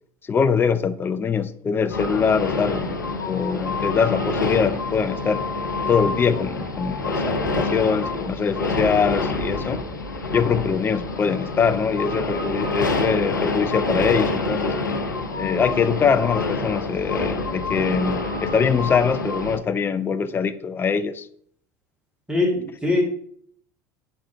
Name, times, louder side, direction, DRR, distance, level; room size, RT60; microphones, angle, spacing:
voice 1, 0.2-3.0 3.2-5.4 5.9-9.8 10.3-14.7 15.3-21.3, left 6 dB, 20° left, 0.4 m, -23 dB
sound 1, 1.9-19.6, left 3 dB, 90° left, 0.7 m, -27 dB
voice 2, 22.3-23.0, left 2 dB, 10° right, 2.4 m, -21 dB
6.3 x 3.6 x 4.6 m
figure-of-eight pair, 70°, 10 cm